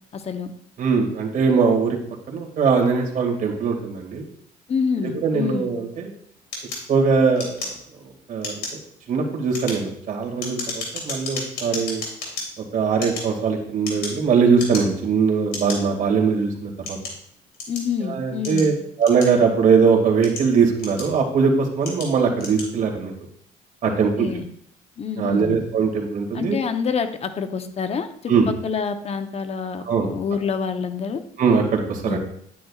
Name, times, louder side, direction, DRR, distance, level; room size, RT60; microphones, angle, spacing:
voice 1, 0.1-0.5 4.7-5.7 17.7-18.7 23.8-24.5 25.0-25.6 26.3-31.2 32.1-32.2, left 6 dB, 40° left, 9 dB, 0.8 m, -27 dB
voice 2, 0.8-2.0 2.3-4.3 5.0-6.1 6.9-7.7 8.0-8.6 9.1-12.0 12.6-17.0 18.0-18.7 19.0-23.1 23.8-24.3 25.2-26.6 28.3-28.5 29.9-30.1 31.4-32.2, right 5 dB, 50° right, 1 dB, 2.1 m, -21 dB
sound 1, 6.5-8.1 8.4-8.8 9.4-12.5 12.9-14.2 14.5-15.1 15.5-15.8 16.4-17.9 18.4-19.6 20.1-21.3 21.8-22.1 22.4-22.7, left 3 dB, 70° left, 3.1 m, -33 dB
10.0 x 9.3 x 2.4 m, 0.68 s
cardioid pair, 110°, 17 cm